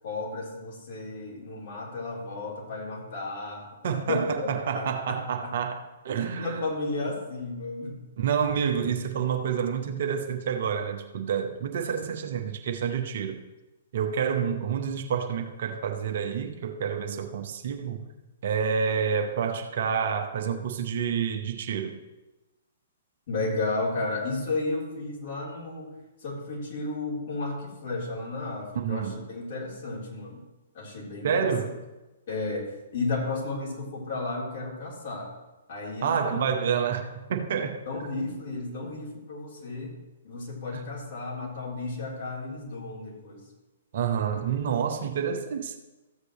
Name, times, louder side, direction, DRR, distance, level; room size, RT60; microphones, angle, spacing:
voice 1, 0.0-5.6 6.1-8.0 23.3-25.9 26.2-30.4 30.7-31.7 32.3-35.3 35.7-36.5 37.9-40.0 40.2-43.4, left 3 dB, 50° left, -4 dB, 3.7 m, -33 dB
voice 2, 3.8-6.7 8.2-13.4 13.9-18.1 18.4-22.0 28.7-29.2 31.2-31.7 36.0-37.8 40.7-40.8 43.9-45.8, right 7 dB, 50° right, 5 dB, 0.9 m, -28 dB
14.5 x 8.0 x 3.1 m, 1.1 s
figure-of-eight pair, 115°, 0 cm